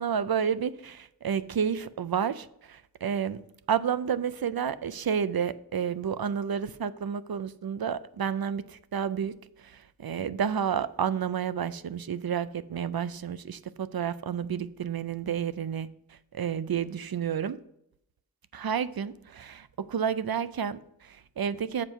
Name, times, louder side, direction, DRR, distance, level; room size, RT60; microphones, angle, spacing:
voice 1, 0.0-3.4 3.7-15.9 16.3-17.6 18.5-21.8, right 8 dB, 70° right, 15 dB, 0.5 m, -30 dB
7.4 x 4.6 x 6.5 m, 0.78 s
wide cardioid pair, 45°, 38 cm